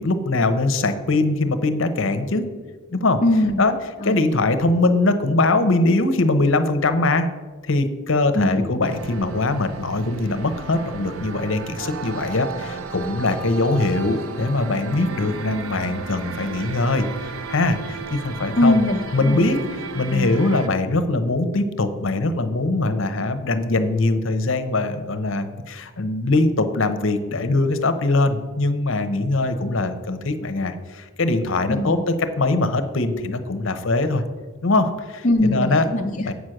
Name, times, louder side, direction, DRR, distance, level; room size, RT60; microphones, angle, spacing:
voice 1, 0.0-2.5 2.9-3.2 3.6-3.7 4.0-7.3 7.6-18.8 19.1-19.6 19.9-34.2 34.6-35.8 36.2-36.3, left 2 dB, 65° left, 10 dB, 0.8 m, -22 dB
voice 2, 3.2-3.6 4.0-4.2 8.3-8.7 18.6-19.7 20.1-20.4 31.7-32.0 35.2-36.3, left 1 dB, 35° left, 1 dB, 0.5 m, -21 dB
sound 1, 8.8-20.7, right 5 dB, 80° right, 0.7 m, -34 dB
8.1 x 6.2 x 6.4 m, 1.4 s
head